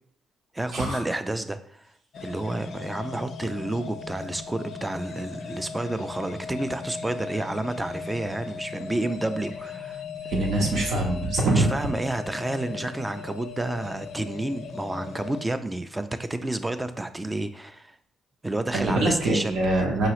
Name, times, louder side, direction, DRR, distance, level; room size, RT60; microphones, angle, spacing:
voice 1, 0.5-1.9 2.2-10.0 10.4-10.5 11.6-18.0 18.4-19.8, right 2 dB, 15° right, 10 dB, 0.4 m, -30 dB
sound 1, 2.1-15.4, left 5 dB, 60° left, 0.4 m, -38 dB
voice 2, 10.3-11.7 18.7-20.1, right 2 dB, 75° right, -1 dB, 0.9 m, -24 dB
4.7 x 3.0 x 3.0 m, 0.67 s
cardioid pair, 90°, 0 cm